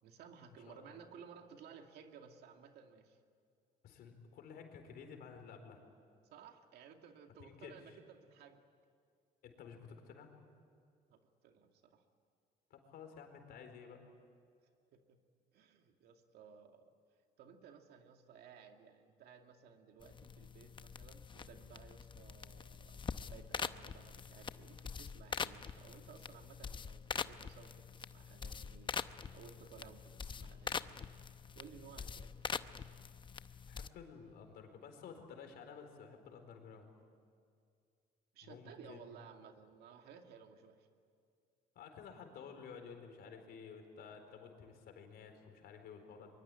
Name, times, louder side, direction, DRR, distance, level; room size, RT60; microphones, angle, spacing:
voice 1, 0.0-3.2 6.2-8.6 11.1-12.0 14.9-15.2 15.5-16.9 17.4-31.0 31.5-32.3 38.3-40.9, right 7 dB, 75° right, 5 dB, 2.3 m, -57 dB
voice 2, 0.7-1.0 3.8-5.8 7.4-8.0 9.4-10.3 12.7-14.0 33.7-36.9 38.4-39.1 41.7-46.4, left 6 dB, 70° left, 5 dB, 4.3 m, -53 dB
sound 1, 20.0-33.9, left 6 dB, 30° left, 0.7 m, -44 dB
23.5 x 23.0 x 9.8 m, 2.3 s
cardioid pair, 110°, 17 cm